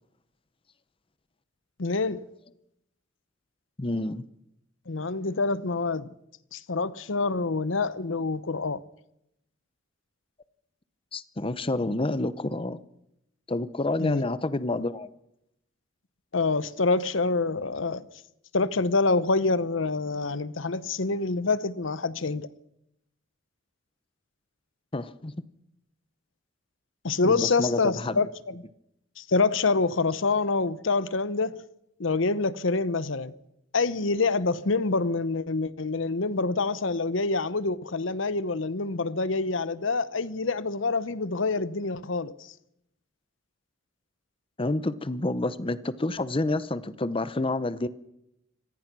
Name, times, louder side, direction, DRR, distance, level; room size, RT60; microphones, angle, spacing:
voice 1, 1.8-2.2 4.9-6.1 6.5-8.8 14.0-14.2 16.3-18.1 18.5-22.5 27.0-28.6 29.2-31.6 32.0-33.3 33.7-42.3, left 3 dB, 70° left, 0.9 m, -26 dB
voice 2, 3.8-4.2 11.1-12.8 13.5-15.1 24.9-25.4 27.2-28.2 44.6-47.9, left 2 dB, 25° left, 0.8 m, -28 dB
25.5 x 18.0 x 6.1 m
head